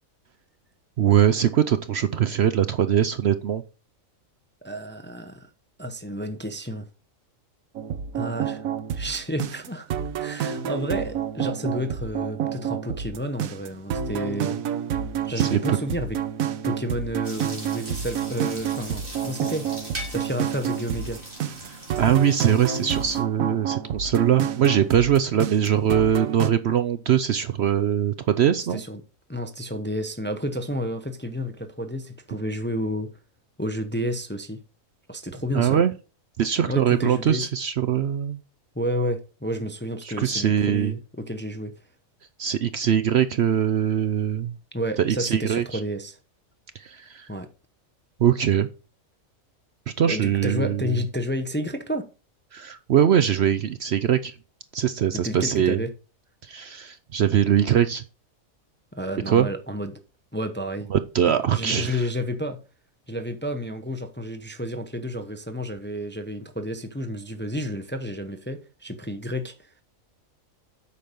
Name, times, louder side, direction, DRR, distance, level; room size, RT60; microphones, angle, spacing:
voice 1, 1.0-3.6 15.4-15.8 21.6-28.8 35.5-35.9 36.4-38.4 40.0-40.9 42.4-44.5 45.0-45.8 46.7-47.3 48.2-48.7 49.9-50.9 52.5-54.3 54.7-55.8 56.4-58.0 59.3-59.5 60.9-62.0, right 9 dB, 60° right, 0.8 m, -22 dB
voice 2, 4.6-5.5 5.8-6.9 8.1-8.7 8.9-9.9 10.2-14.6 15.2-16.2 16.6-19.7 20.1-21.2 28.7-29.0 29.3-33.1 33.6-34.6 35.1-35.8 36.6-37.5 38.7-41.7 44.7-46.2 47.3-47.5 50.1-52.1 55.1-55.9 58.9-60.0 60.3-60.9 61.3-62.6 63.1-69.7, equal, 10° left, 0.7 m, -31 dB
sound 1, 7.8-26.5, right 9 dB, 80° right, 1.2 m, -29 dB
sound 2, 17.2-23.2, right 1 dB, 40° right, 3.4 m, -40 dB
8.5 x 5.9 x 5.2 m
omnidirectional pair, 1.4 m